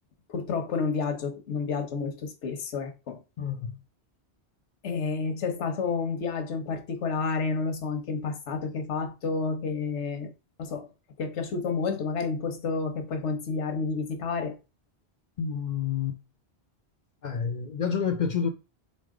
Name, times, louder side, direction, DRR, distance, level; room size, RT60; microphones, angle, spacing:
voice 1, 0.3-3.2 4.8-10.3 10.6-10.9 11.2-14.6, left 4 dB, 90° left, 1.1 m, -30 dB
voice 2, 3.4-3.8 15.4-16.2 17.2-18.5, left 7 dB, 55° left, 0.5 m, -29 dB
4.1 x 3.2 x 3.6 m
omnidirectional pair, 1.1 m